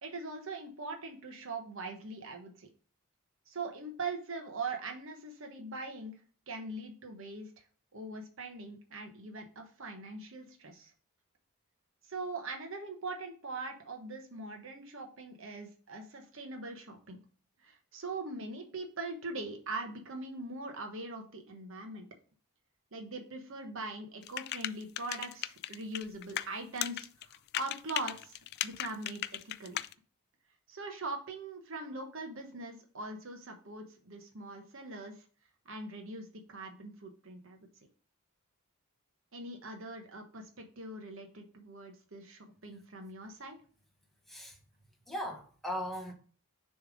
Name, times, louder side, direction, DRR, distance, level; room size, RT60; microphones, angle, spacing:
voice 1, 0.0-2.7 3.5-6.1 6.5-7.6 7.9-10.9 12.1-17.2 17.6-22.1 22.9-29.8 30.7-35.2 35.6-37.6 39.3-43.6, right 2 dB, 60° right, 1.1 m, -42 dB
sound 1, 24.2-26.5 26.8-29.9, left 12 dB, 50° left, 0.3 m, -36 dB
voice 2, 45.1-46.1, equal, ahead, 1.2 m, -38 dB
6.6 x 3.4 x 5.0 m
head